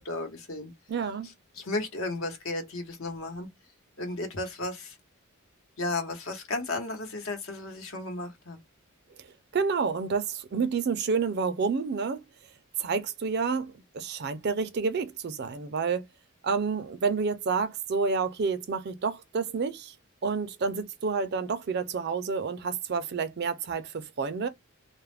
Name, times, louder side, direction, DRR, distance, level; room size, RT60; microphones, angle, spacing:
voice 1, 0.0-0.7 1.2-3.5 4.0-5.0 5.8-8.6, left 2 dB, 70° left, 1.0 m, -34 dB
voice 2, 0.9-1.3 9.2-9.3 9.5-12.2 12.8-16.0 16.4-19.9 20.2-24.5, right 5 dB, 50° right, 0.4 m, -29 dB
2.3 x 2.0 x 3.2 m
head